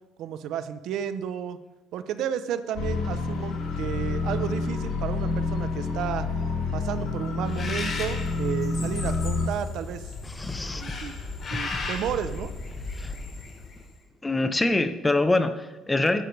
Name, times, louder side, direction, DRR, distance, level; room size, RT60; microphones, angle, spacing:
voice 1, 0.2-1.6 1.9-6.3 6.7-10.1 10.8-11.2 11.5-12.5, right 9 dB, 65° right, 11 dB, 0.6 m, -32 dB
sound 1, 2.8-9.5, left 3 dB, 75° left, 2.1 m, -28 dB
Bird, 7.5-13.9, left 3 dB, 40° left, 1.8 m, -35 dB
voice 2, 10.3-11.0 11.5-11.8 13.0-13.2 14.2-16.2, left 2 dB, 10° left, 10 dB, 0.6 m, -25 dB
9.9 x 6.7 x 4.6 m, 1.1 s
cardioid pair, 140°, 0 cm